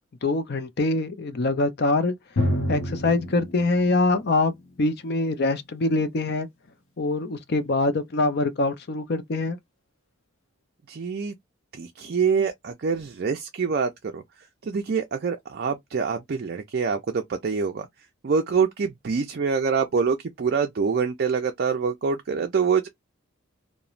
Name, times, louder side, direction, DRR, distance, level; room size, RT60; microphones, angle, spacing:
voice 1, 0.2-2.1 2.7-4.5 4.8-6.5 7.0-9.6, left 2 dB, 50° left, 0.5 m, -24 dB
Drum, 2.4-5.9, equal, 90° left, 0.8 m, -30 dB
voice 2, 10.9-11.3 11.7-14.2 14.6-17.9 18.2-22.9, right 5 dB, 50° right, 0.4 m, -25 dB
3.0 x 2.1 x 2.4 m
head